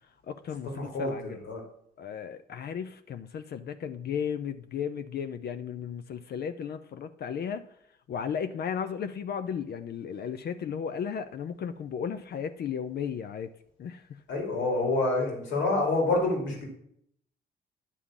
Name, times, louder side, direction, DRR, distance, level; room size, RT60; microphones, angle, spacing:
voice 1, 0.3-1.4 2.0-7.7 8.1-13.5 13.8-14.2, left 7 dB, 60° left, 0.6 m, -35 dB
voice 2, 0.8-1.6 14.3-16.6, left 2 dB, 80° left, 2.6 m, -27 dB
10.0 x 3.6 x 7.2 m
hypercardioid pair, 50°, 19 cm